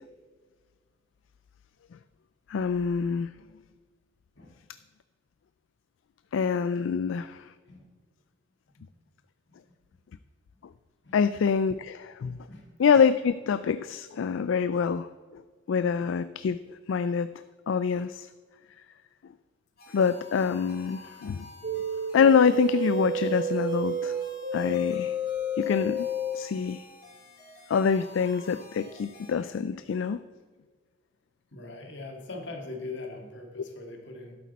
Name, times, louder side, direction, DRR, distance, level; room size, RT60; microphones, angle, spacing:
voice 1, 2.5-3.3 6.3-7.5 11.1-12.5 12.8-15.4 15.7-17.3 17.7-18.3 19.9-21.4 22.1-24.1 24.5-25.2 25.6-26.1 26.3-26.9 27.7-30.2, left 6 dB, 85° left, 13 dB, 0.3 m, -25 dB
sound 1, 19.8-29.3, left 2 dB, 50° left, 3.4 m, -50 dB
sound 2, 21.6-26.4, equal, 55° right, 0.8 m, -30 dB
voice 2, 31.5-34.4, left 3 dB, 65° left, 2 dB, 1.8 m, -41 dB
11.5 x 8.4 x 4.1 m, 1.5 s
head